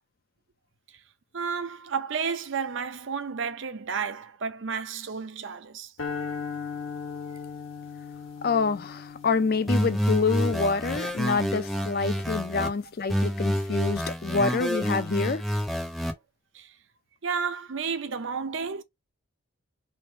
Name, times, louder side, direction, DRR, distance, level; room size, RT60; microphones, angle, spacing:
voice 1, 1.3-5.9 16.5-16.7 17.2-18.8, right 6 dB, 65° right, 0.6 m, -32 dB
sound 1, 6.0-12.3, left 5 dB, 75° left, 1.3 m, -39 dB
voice 2, 8.4-15.4, left 4 dB, 45° left, 0.4 m, -27 dB
sound 2, 9.7-12.7 13.1-16.1, equal, ahead, 0.7 m, -28 dB
3.3 x 2.5 x 4.4 m
head